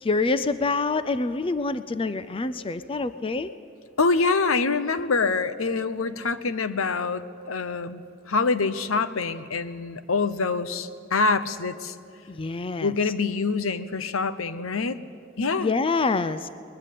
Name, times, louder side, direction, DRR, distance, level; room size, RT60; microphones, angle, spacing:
voice 1, 0.0-3.5 12.3-12.9 15.6-16.5, left 3 dB, 25° left, 13 dB, 0.5 m, -26 dB
voice 2, 4.0-11.9 12.8-15.0 15.4-15.7, left 4 dB, 75° left, 12 dB, 0.9 m, -25 dB
21.0 x 20.5 x 8.4 m, 2.3 s
head